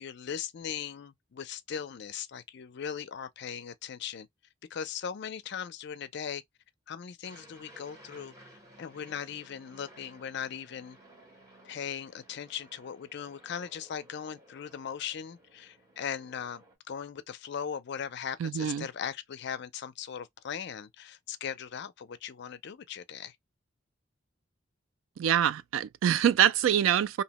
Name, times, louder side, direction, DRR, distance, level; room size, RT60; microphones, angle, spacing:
voice 1, 0.0-4.3 4.7-6.4 6.9-8.3 8.8-11.0 11.6-23.4, left 8 dB, 55° left, 0.4 m, -39 dB
Aircraft, 7.2-16.7, right 1 dB, 20° right, 1.0 m, -57 dB
voice 2, 18.4-18.9 25.2-27.2, right 9 dB, 85° right, 0.3 m, -25 dB
2.7 x 2.1 x 2.8 m
head